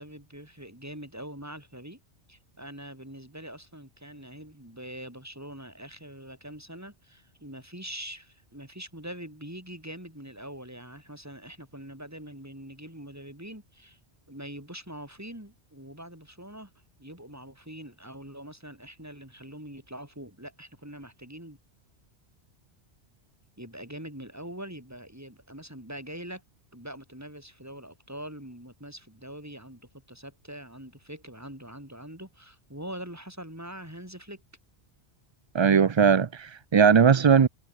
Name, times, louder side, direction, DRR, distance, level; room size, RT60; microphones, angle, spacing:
voice 1, 0.0-2.0 2.3-14.0 14.3-16.7 17.0-21.6 23.6-26.4 26.7-34.4, right 1 dB, 15° right, 4.5 m, -43 dB
voice 2, 35.5-37.5, right 6 dB, 45° right, 0.3 m, -19 dB
omnidirectional pair, 1.1 m